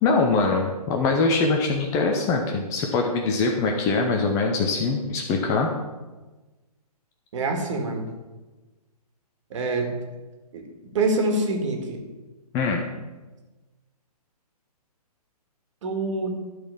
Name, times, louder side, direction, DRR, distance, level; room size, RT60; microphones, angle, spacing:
voice 1, 0.0-5.7 12.5-12.8, left 3 dB, 15° left, 2 dB, 0.6 m, -23 dB
voice 2, 7.3-8.1 9.5-9.9 10.5-10.7 10.9-12.0 15.8-16.4, right 2 dB, 50° right, 3 dB, 2.1 m, -25 dB
12.5 x 4.2 x 7.1 m, 1.2 s
hypercardioid pair, 150°, 20 cm